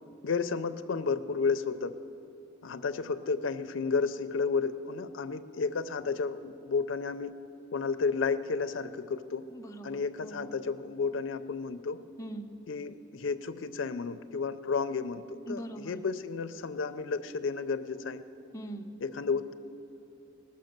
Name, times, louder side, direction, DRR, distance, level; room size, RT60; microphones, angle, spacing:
voice 1, 0.2-1.9 2.6-7.3 7.7-9.4 9.8-12.0 12.7-18.2 19.0-19.5, left 5 dB, 70° left, 10 dB, 0.4 m, -32 dB
voice 2, 9.5-10.5 12.2-12.6 15.5-16.0 18.5-18.9, right 1 dB, 15° left, 3 dB, 0.6 m, -42 dB
18.5 x 6.8 x 6.6 m, 2.9 s
head